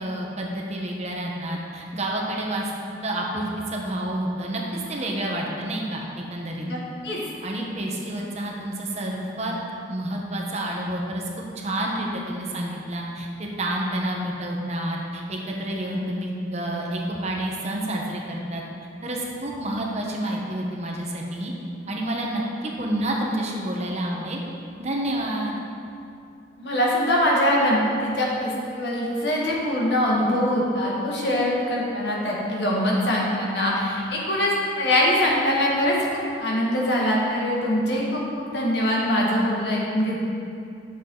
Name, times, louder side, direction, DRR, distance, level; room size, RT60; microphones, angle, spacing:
voice 1, 0.0-2.7 3.0-6.0 6.3-6.7 7.4-9.5 9.9-11.2 11.6-18.6 19.0-21.5 21.9-24.4 24.8-25.6, right 1 dB, 40° right, -1 dB, 1.1 m, -29 dB
voice 2, 26.6-40.2, left 1 dB, 65° left, -3 dB, 1.8 m, -23 dB
10.0 x 6.8 x 3.9 m, 2.5 s
head